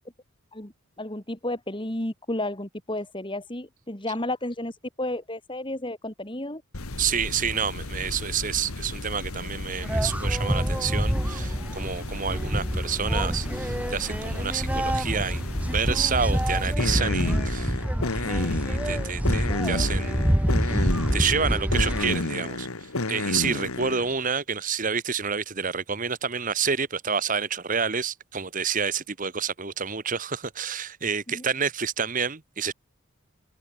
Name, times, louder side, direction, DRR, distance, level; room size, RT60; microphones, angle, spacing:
voice 1, 0.5-4.7 5.0-6.6 31.3-31.4, left 1 dB, 20° left, 2.3 m, -32 dB
sound 1, 6.7-24.1, left 2 dB, 85° left, 1.9 m, -32 dB
voice 2, 7.0-15.5 15.7-17.8 18.1-20.2 20.6-22.7 23.1-32.7, right 6 dB, 40° right, 1.3 m, -29 dB
sound 2, 9.8-22.2, equal, 5° right, 0.7 m, -27 dB
open air
head